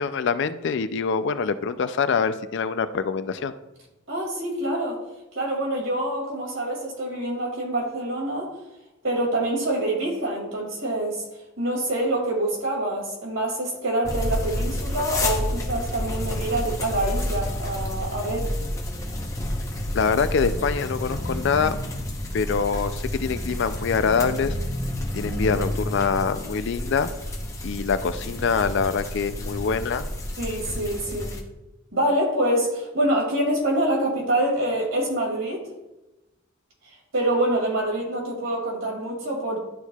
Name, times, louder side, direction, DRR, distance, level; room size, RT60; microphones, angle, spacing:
voice 1, 0.0-3.5 19.9-21.8 22.3-24.6 25.2-27.1 27.6-30.1, left 5 dB, 60° left, 12 dB, 0.4 m, -24 dB
voice 2, 4.1-5.0 5.3-8.5 9.0-11.2 11.6-18.5 30.4-31.4 31.9-35.7 37.1-39.6, right 1 dB, 70° right, -1 dB, 2.4 m, -26 dB
sound 1, 14.0-31.4, left 1 dB, 15° left, 0.8 m, -30 dB
11.5 x 4.5 x 2.3 m, 0.98 s
head